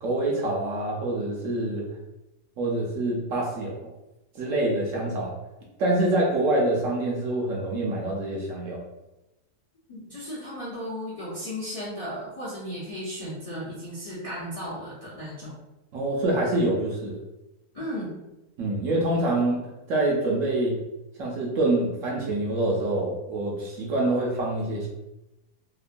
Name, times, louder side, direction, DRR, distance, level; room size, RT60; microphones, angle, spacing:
voice 1, 0.0-1.8 2.6-3.8 4.3-5.3 5.8-8.8 15.9-17.2 18.6-20.8 21.2-24.9, right 2 dB, 65° right, -3 dB, 0.9 m, -26 dB
voice 2, 9.9-15.5 17.7-18.1, equal, 40° left, -8 dB, 0.5 m, -35 dB
2.9 x 2.1 x 2.5 m, 0.96 s
omnidirectional pair, 1.6 m